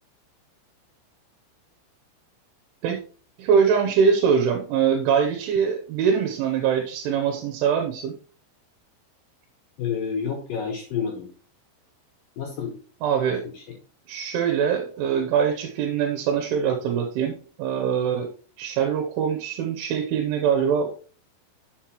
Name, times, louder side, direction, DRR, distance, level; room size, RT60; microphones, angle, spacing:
voice 1, 3.4-8.2 13.0-13.4 14.1-18.3 18.6-20.9, right 7 dB, 75° right, 5 dB, 3.3 m, -23 dB
voice 2, 9.8-11.3 12.4-12.8 13.3-13.6, left 7 dB, 70° left, 1 dB, 2.1 m, -29 dB
11.0 x 6.8 x 3.1 m, 0.40 s
omnidirectional pair, 5.7 m